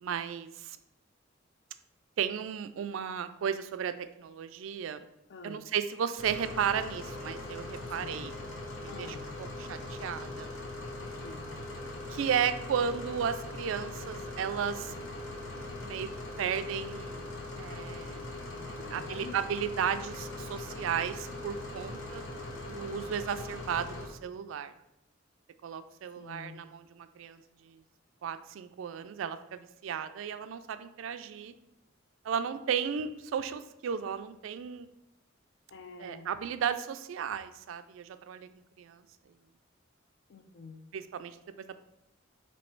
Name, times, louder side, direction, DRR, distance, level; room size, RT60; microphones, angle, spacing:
voice 1, 0.0-0.8 2.2-5.1 5.4-8.3 8.8-10.5 12.1-14.9 15.8-16.1 16.4-17.3 17.6-18.3 18.7-22.4 22.7-24.7 25.6-27.8 28.2-31.5 32.2-34.9 36.0-38.5 38.8-39.0 40.9-41.8, right 8 dB, 90° right, 11 dB, 0.3 m, -34 dB
voice 2, 5.3-5.7 8.0-8.2 8.9-9.3 11.0-11.5 18.5-19.4 22.3-23.1 26.2-26.7 35.7-36.3 40.3-40.9, left 3 dB, 60° left, 8 dB, 0.4 m, -48 dB
sound 1, 6.2-24.1, left 2 dB, 85° left, 0.8 m, -41 dB
3.1 x 3.0 x 4.4 m, 0.83 s
head